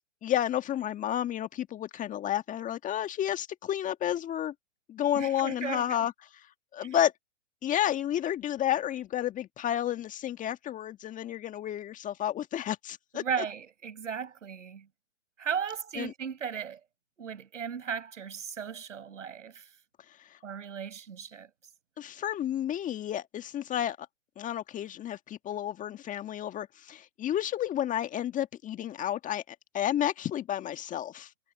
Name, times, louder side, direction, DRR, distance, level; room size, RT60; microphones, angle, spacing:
voice 1, 0.2-4.5 4.9-6.1 6.7-7.1 7.6-13.2 16.0-16.1 22.0-24.1 24.4-31.3, left 11 dB, 20° left, 1.7 m, -31 dB
voice 2, 5.1-6.1 6.8-7.0 13.1-14.9 15.4-16.8 17.2-19.6 20.4-21.5, right 7 dB, 75° right, 7.7 m, -36 dB
hypercardioid pair, 120°, 38 cm